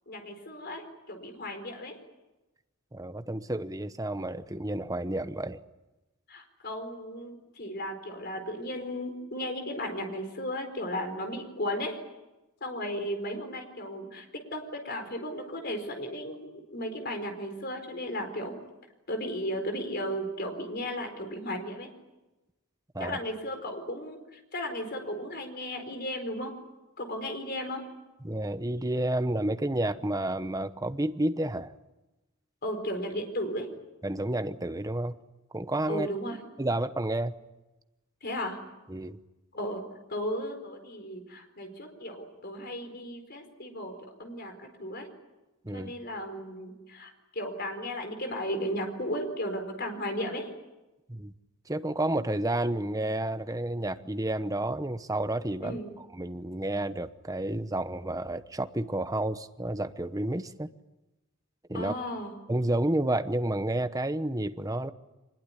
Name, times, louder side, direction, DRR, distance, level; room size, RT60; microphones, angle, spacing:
voice 1, 0.1-2.0 6.3-12.0 12.6-14.3 14.5-18.5 19.1-21.9 23.0-26.5 27.0-27.8 32.6-33.7 35.9-36.4 38.2-38.6 39.5-39.8 40.1-45.1 45.7-50.5 55.6-55.9 61.7-62.3, equal, 50° left, 6 dB, 4.5 m, -35 dB
voice 2, 2.9-5.6 22.9-23.2 28.2-31.7 34.0-35.1 35.5-36.1 36.6-37.3 38.9-39.2 45.6-45.9 51.1-51.3 51.7-60.7 61.7-61.9 62.5-64.9, right 1 dB, 15° right, 11 dB, 1.0 m, -30 dB
24.5 x 21.0 x 10.0 m, 1.1 s
head